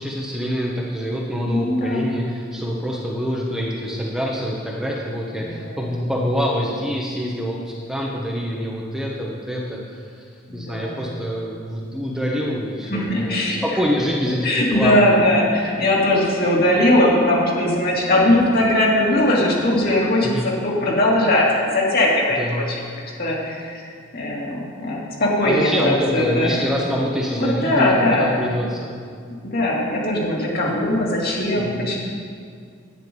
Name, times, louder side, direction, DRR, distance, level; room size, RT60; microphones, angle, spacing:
voice 1, 0.0-10.2 10.5-15.0 20.2-20.5 22.4-22.6 25.4-28.9 31.6-31.8, equal, ahead, -3 dB, 1.0 m, -25 dB
voice 2, 1.4-2.1 5.4-5.8 10.5-11.0 12.9-13.6 14.4-22.8 23.2-23.8 24.1-26.5 27.4-28.4 29.4-32.0, left 1 dB, 50° left, -4 dB, 2.7 m, -20 dB
11.0 x 9.3 x 5.4 m, 2.2 s
head